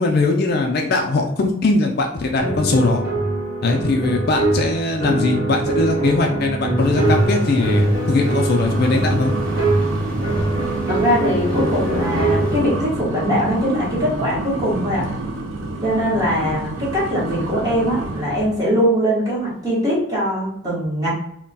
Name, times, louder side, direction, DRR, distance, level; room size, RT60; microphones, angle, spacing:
voice 1, 0.0-3.0 3.6-9.3, left 2 dB, 50° left, 2 dB, 0.3 m, -20 dB
sound 1, 2.4-12.8, right 1 dB, 40° right, 1.0 m, -22 dB
sound 2, 6.8-12.6, equal, 5° left, 1.1 m, -37 dB
sound 3, 8.6-18.6, right 2 dB, 65° right, 0.5 m, -29 dB
voice 2, 10.9-15.0 15.8-21.1, equal, 15° right, -7 dB, 1.0 m, -21 dB
2.2 x 2.2 x 3.9 m, 0.74 s
head